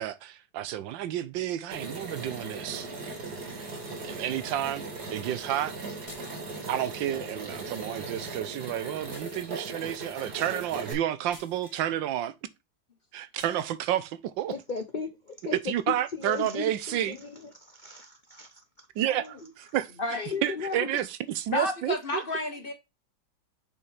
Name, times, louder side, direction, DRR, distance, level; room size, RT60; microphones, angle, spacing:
voice 1, 0.0-2.9 4.0-4.8 5.1-5.8 6.7-12.3 13.1-14.1 14.4-14.5 15.5-17.1 19.0-19.9 20.4-22.2, right 12 dB, 85° right, 1.4 m, -30 dB
sound 1, 1.7-10.9, right 3 dB, 60° right, 2.4 m, -38 dB
voice 2, 3.9-4.2 6.5-6.7 7.0-7.1 8.0-8.1 14.5-15.6 15.9-18.9 20.3-20.9, left 5 dB, 80° left, 0.4 m, -37 dB
sound 2, 6.1-6.8 9.1-9.9 11.3-11.9 13.4-13.7, left 2 dB, 20° left, 1.4 m, -51 dB
voice 3, 20.0-20.3 21.5-22.7, left 2 dB, 40° left, 0.9 m, -31 dB
6.8 x 5.6 x 3.3 m
omnidirectional pair, 2.0 m